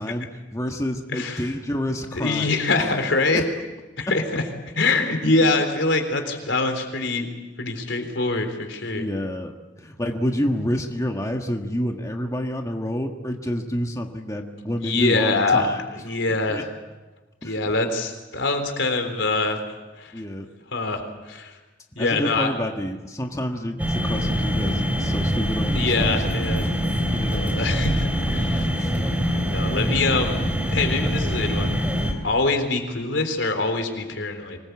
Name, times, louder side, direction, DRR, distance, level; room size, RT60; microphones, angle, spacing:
voice 1, 0.0-2.5 3.2-3.5 8.9-15.8 16.5-16.6 17.4-17.6 20.1-20.5 22.0-26.2 26.6-26.8 27.1-27.8 28.8-28.9, equal, 15° left, 3 dB, 1.5 m, -28 dB
voice 2, 1.1-1.5 2.1-3.4 4.0-4.4 4.8-7.3 7.6-9.1 14.8-16.7 17.4-19.7 20.0-20.1 20.7-21.5 22.0-22.5 25.7-26.6 27.3-28.7 29.5-30.4 30.7-31.8 32.2-34.6, left 3 dB, 80° left, 5 dB, 3.8 m, -24 dB
sound 1, 23.8-32.1, equal, 10° right, 3.4 m, -24 dB
25.0 x 20.0 x 8.3 m, 1.2 s
head